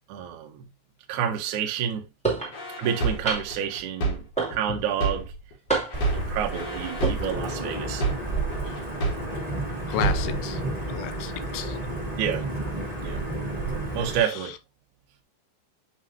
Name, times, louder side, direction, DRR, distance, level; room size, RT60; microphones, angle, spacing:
voice 1, 0.1-0.6 1.1-2.0 2.8-5.3 6.1-8.0 12.1-12.5 13.0-13.2 13.9-14.5, right 9 dB, 80° right, 1.7 m, -29 dB
sound 1, 2.2-2.5 3.2-3.7 4.4-4.9 5.7-6.2 6.9-7.2, right 4 dB, ahead, 1.5 m, -27 dB
sound 2, 2.5-5.5 5.9-9.5 9.9-10.5, right 3 dB, 50° left, 2.2 m, -29 dB
Wind / Thunder / Rain, 5.9-14.2, right 2 dB, 20° right, 1.0 m, -31 dB
voice 2, 9.9-10.6 10.9-11.8 14.2-14.4, left 13 dB, 80° left, 2.5 m, -33 dB
8.9 x 3.7 x 2.9 m
omnidirectional pair, 5.3 m